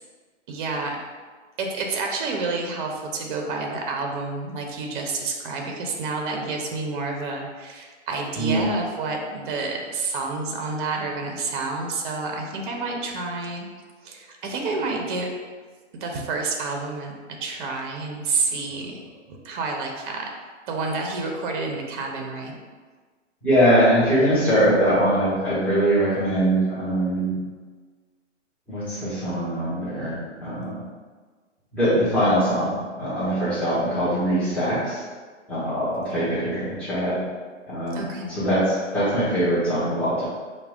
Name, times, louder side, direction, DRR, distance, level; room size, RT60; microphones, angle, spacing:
voice 1, 0.5-1.0 1.6-13.7 14.0-15.3 15.9-17.1 17.4-19.0 19.3-20.3 20.7-22.5 37.9-38.4, right 3 dB, 45° right, 2 dB, 0.5 m, -29 dB
voice 2, 23.4-27.3 28.7-30.7 31.7-35.0 35.5-37.1 37.7-38.0 38.3-40.3, right 1 dB, 5° left, -12 dB, 0.8 m, -22 dB
4.6 x 2.1 x 2.3 m, 1.5 s
hypercardioid pair, 135°, 37 cm